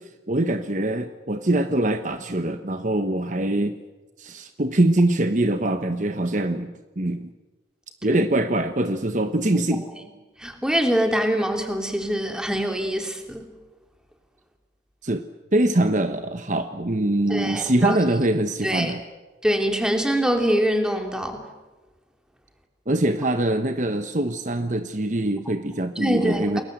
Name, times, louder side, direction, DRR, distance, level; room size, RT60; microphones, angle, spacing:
voice 1, 0.0-3.8 4.2-7.3 8.0-9.9 15.0-19.0 22.9-26.6, right 1 dB, 40° right, 8 dB, 1.1 m, -23 dB
voice 2, 10.4-13.5 17.3-18.0 18.6-18.9 19.4-21.4 26.0-26.6, equal, 5° right, 4 dB, 3.0 m, -24 dB
29.5 x 21.0 x 8.0 m, 1.2 s
head